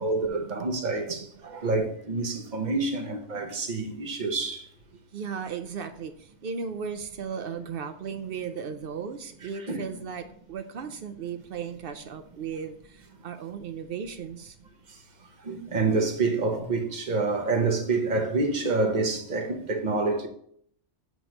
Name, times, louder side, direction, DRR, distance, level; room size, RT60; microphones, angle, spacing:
voice 1, 0.0-4.7 9.4-9.8 15.4-20.3, right 3 dB, 40° right, 1.0 m, -27 dB
voice 2, 5.1-14.6, right 6 dB, 60° right, 0.6 m, -36 dB
8.1 x 3.0 x 5.1 m
omnidirectional pair, 1.3 m